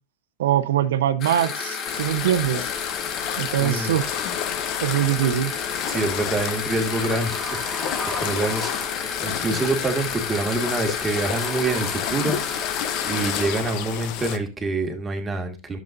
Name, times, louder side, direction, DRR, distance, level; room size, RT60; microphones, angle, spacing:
voice 1, 0.4-2.7 3.4-4.0 4.8-5.5, right 11 dB, 80° right, 0.8 m, -22 dB
sound 1, 1.2-13.5, left 6 dB, 40° left, 1.5 m, -31 dB
sound 2, 1.8-14.4, left 11 dB, 55° left, 0.9 m, -31 dB
voice 2, 3.6-4.0 5.9-12.4 13.0-15.8, right 3 dB, 15° right, 2.0 m, -26 dB
sound 3, 4.0-14.2, equal, 15° left, 3.3 m, -40 dB
11.0 x 7.4 x 2.6 m
hypercardioid pair, 110°, 0 cm